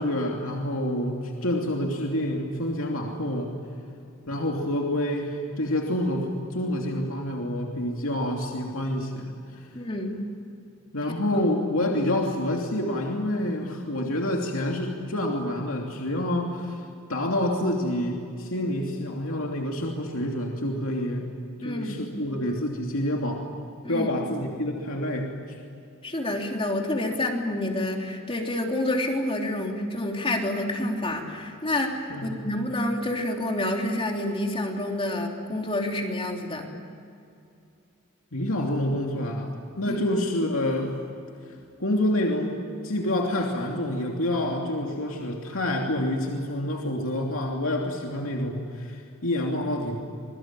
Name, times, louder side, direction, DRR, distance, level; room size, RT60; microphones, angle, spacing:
voice 1, 0.0-3.5 4.3-9.3 10.9-16.8 17.1-21.3 21.6-23.4 23.9-25.3 32.1-32.4 38.3-40.9 41.8-42.6 42.8-50.0, left 1 dB, 70° left, 0 dB, 2.9 m, -27 dB
voice 2, 9.7-10.2 11.8-11.9 21.6-22.0 23.8-24.1 26.0-36.7 39.8-40.0, left 1 dB, 25° left, 1 dB, 3.3 m, -28 dB
27.0 x 22.0 x 9.1 m, 2.5 s
head